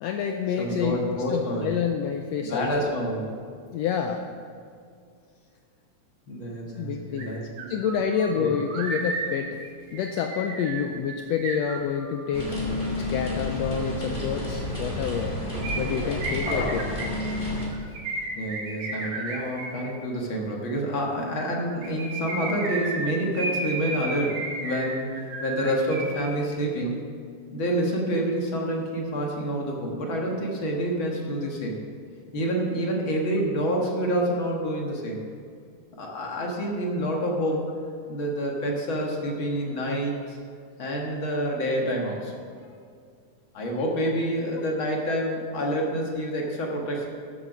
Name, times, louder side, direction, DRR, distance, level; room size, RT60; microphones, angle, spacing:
voice 1, 0.0-2.9 3.7-4.2 6.8-7.3 7.7-9.5 9.9-12.5 13.1-15.3 15.8-16.9, left 7 dB, 85° left, 4 dB, 1.5 m, -28 dB
voice 2, 0.6-1.7 2.5-3.3 6.3-7.7 8.3-8.5 18.4-25.1 25.4-27.1 27.5-31.8 32.3-35.2 36.0-37.7 38.1-40.4 40.8-42.3 43.5-47.1, equal, 50° left, -1 dB, 1.9 m, -28 dB
sound 1, 7.2-7.3 7.6-12.3 15.6-19.8 21.7-26.3 26.6-26.7, right 2 dB, 75° right, 3.3 m, -33 dB
sound 2, 12.3-17.7, left 1 dB, 15° left, 2.1 m, -30 dB
13.0 x 7.4 x 6.0 m, 2.3 s
omnidirectional pair, 3.6 m